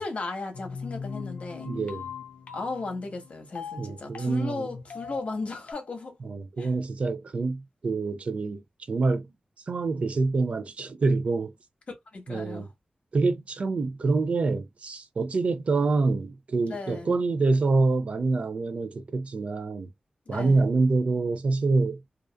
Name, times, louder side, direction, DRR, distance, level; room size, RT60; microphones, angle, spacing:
voice 1, 0.0-1.7 2.5-6.2 6.6-6.7 12.1-12.7 16.7-17.2 20.3-20.6, left 3 dB, 60° left, 0.9 m, -35 dB
sound 1, 0.5-5.7, left 6 dB, 80° left, 0.5 m, -40 dB
voice 2, 1.7-2.1 3.8-4.7 6.2-8.6 8.9-9.3 9.7-11.5 12.3-12.7 13.1-19.9 20.3-22.0, right 3 dB, 60° right, 0.4 m, -26 dB
2.4 x 2.3 x 2.2 m
wide cardioid pair, 90°, 2 cm